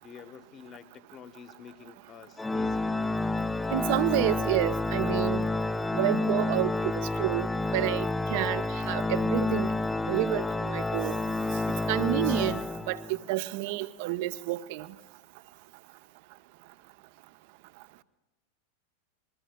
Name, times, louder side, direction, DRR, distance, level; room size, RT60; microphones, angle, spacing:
voice 1, 0.0-3.0, left 7 dB, 30° left, 1.0 m, -49 dB
Organ, 2.4-13.2, left 2 dB, 10° left, 0.4 m, -29 dB
voice 2, 3.7-5.4 5.9-9.7 10.1-11.2 11.9-12.6 12.9-14.9, right 16 dB, 50° right, 0.6 m, -29 dB
27.5 x 21.0 x 2.2 m
figure-of-eight pair, 90°, 0 cm